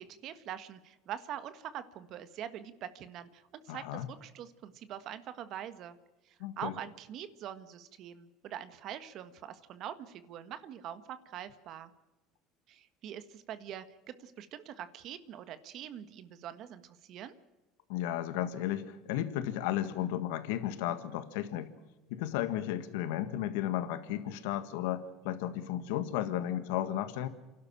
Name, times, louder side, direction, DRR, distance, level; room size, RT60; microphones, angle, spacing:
voice 1, 0.0-6.0 6.2-11.9 12.7-17.4, right 10 dB, 55° right, 12 dB, 1.5 m, -44 dB
voice 2, 3.7-4.0 6.4-6.7 17.9-21.7 22.1-27.3, left 12 dB, 85° left, 11 dB, 1.6 m, -34 dB
28.0 x 12.0 x 9.0 m, 1.1 s
supercardioid pair, 105°, 0 cm